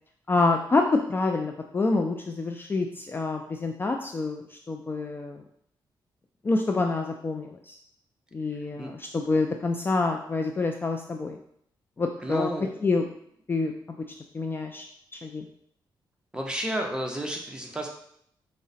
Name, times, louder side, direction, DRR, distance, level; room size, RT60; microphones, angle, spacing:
voice 1, 0.3-5.4 6.4-7.8 8.3-11.4 12.0-12.5 12.8-13.1 13.5-13.7 14.3-14.9 15.2-15.5, left 3 dB, 25° left, 3 dB, 0.3 m, -27 dB
voice 2, 12.2-12.7 16.3-17.9, right 1 dB, 10° right, 1 dB, 0.7 m, -31 dB
4.6 x 2.1 x 4.0 m, 0.69 s
cardioid pair, 105°, 8 cm